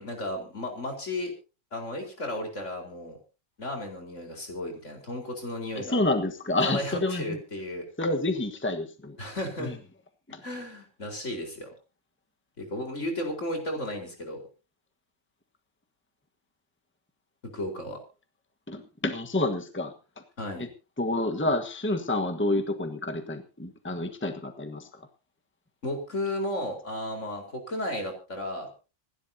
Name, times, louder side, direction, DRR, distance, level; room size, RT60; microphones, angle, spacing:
voice 1, 0.0-1.3 1.7-3.2 3.6-6.0 6.6-7.8 9.2-9.8 10.4-11.7 12.6-14.4 17.4-18.0 20.4-20.7 25.8-28.7, left 1 dB, 75° left, 2 dB, 4.8 m, -34 dB
voice 2, 5.7-7.4 8.0-9.2 9.6-9.7 10.3-10.4 18.7-19.9 20.6-20.7 21.0-24.9, left 2 dB, 10° left, 6 dB, 1.3 m, -28 dB
27.0 x 11.5 x 2.8 m, 0.32 s
omnidirectional pair, 1.3 m